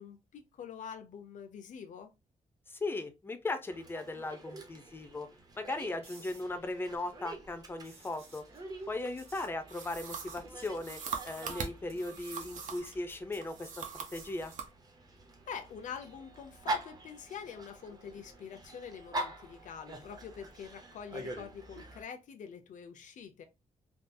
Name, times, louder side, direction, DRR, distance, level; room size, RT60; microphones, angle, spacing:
voice 1, 0.0-2.1 14.0-14.2 15.5-23.4, left 7 dB, 70° left, 0.6 m, -45 dB
voice 2, 2.7-5.3 5.6-8.4 8.9-14.5, left 2 dB, 15° left, 0.4 m, -38 dB
Dog, 3.7-22.0, right 1 dB, 30° right, 0.6 m, -45 dB
sound 1, 6.0-14.7 18.9-19.1, right 3 dB, 50° right, 1.2 m, -58 dB
sound 2, 9.7-13.0 13.4-14.7, right 6 dB, 75° right, 0.7 m, -42 dB
3.5 x 2.3 x 2.6 m
wide cardioid pair, 170°, 13 cm